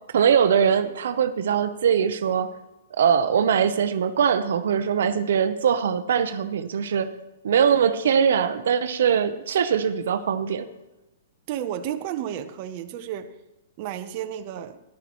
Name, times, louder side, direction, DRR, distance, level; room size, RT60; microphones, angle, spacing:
voice 1, 0.1-2.5 3.0-7.1 7.4-10.7, right 7 dB, 70° right, 10 dB, 0.8 m, -22 dB
voice 2, 11.5-13.3 13.8-14.8, right 10 dB, 35° right, 7 dB, 0.8 m, -32 dB
13.5 x 11.5 x 3.1 m, 1.0 s
hypercardioid pair, 160°, 0 cm